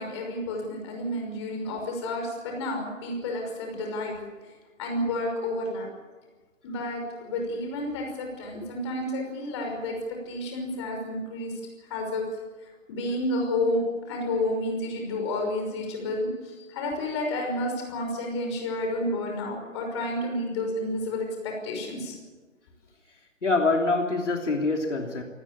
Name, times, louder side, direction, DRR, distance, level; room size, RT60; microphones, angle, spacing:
voice 1, 0.0-4.2 4.8-5.9 6.6-10.0 10.3-11.5 11.9-12.2 12.9-22.1, left 1 dB, 20° left, 2 dB, 5.7 m, -30 dB
voice 2, 23.4-25.2, left 3 dB, 60° left, 2 dB, 3.2 m, -25 dB
24.0 x 19.0 x 8.5 m, 1.3 s
figure-of-eight pair, 155°, 40 cm